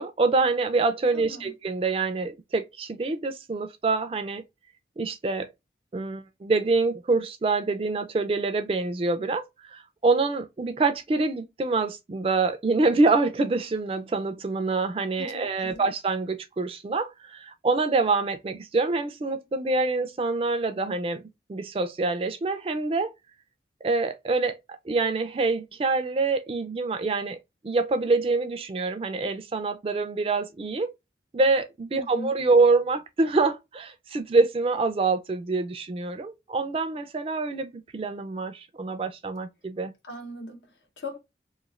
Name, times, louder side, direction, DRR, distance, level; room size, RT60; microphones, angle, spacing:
voice 1, 0.0-4.4 5.0-5.5 5.9-9.4 9.7-21.2 21.5-23.1 23.8-24.6 24.9-27.4 27.6-30.9 31.3-39.9, right 3 dB, 30° right, 0.3 m, -26 dB
voice 2, 1.1-1.5 15.2-15.9 31.9-32.4 40.0-41.2, left 1 dB, 90° left, 0.9 m, -40 dB
3.0 x 2.3 x 2.3 m
head